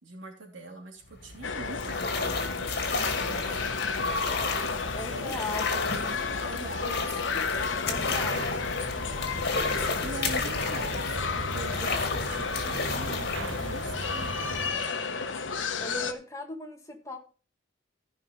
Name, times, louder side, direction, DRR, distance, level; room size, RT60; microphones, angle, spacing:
voice 1, 0.0-3.6 5.1-5.6 6.4-7.4 10.0-14.3, right 3 dB, 85° right, 1 dB, 3.0 m, -43 dB
sound 1, 1.1-14.9, left 3 dB, 55° left, 2.2 m, -33 dB
sound 2, 1.4-16.1, left 5 dB, 90° left, 1.1 m, -32 dB
voice 2, 4.9-5.6 7.9-8.5 15.8-17.2, left 2 dB, 15° left, 2 dB, 2.0 m, -38 dB
sound 3, 7.8-14.7, right 2 dB, 70° right, 1.4 m, -39 dB
15.0 x 5.5 x 5.0 m, 0.36 s
head